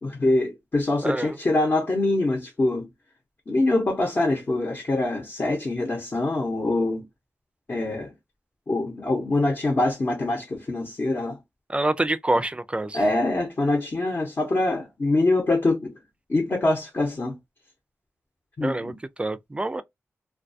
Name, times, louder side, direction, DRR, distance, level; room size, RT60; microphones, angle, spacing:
voice 1, 0.0-2.9 3.5-7.0 7.7-8.1 8.7-11.4 12.9-15.9 16.3-17.4 18.6-18.9, left 2 dB, 45° left, 0.8 m, -24 dB
voice 2, 1.0-1.4 11.7-13.0 18.6-18.9 19.2-19.8, right 2 dB, 20° right, 0.3 m, -26 dB
2.3 x 2.2 x 2.6 m
cardioid pair, 60°, 5 cm